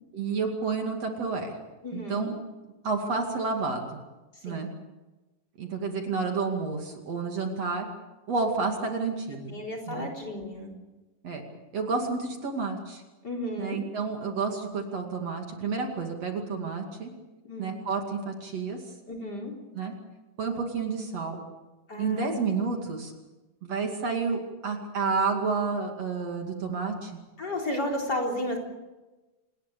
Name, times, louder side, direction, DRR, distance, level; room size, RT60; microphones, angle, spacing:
voice 1, 0.1-1.6 1.9-2.4 2.8-4.0 4.4-4.7 5.6-7.9 8.3-9.5 9.9-10.1 11.2-11.4 11.7-13.0 13.6-17.1 17.6-18.8 19.8-19.9 20.4-21.4 22.0-23.1 23.6-27.2, right 4 dB, 50° right, 3 dB, 3.4 m, -30 dB
voice 2, 1.8-2.3 4.3-4.7 9.5-10.7 13.2-13.8 17.4-17.8 19.1-19.5 21.9-22.4 27.4-28.6, left 1 dB, 30° left, 3 dB, 4.3 m, -33 dB
27.5 x 20.0 x 6.9 m, 1.1 s
omnidirectional pair, 3.8 m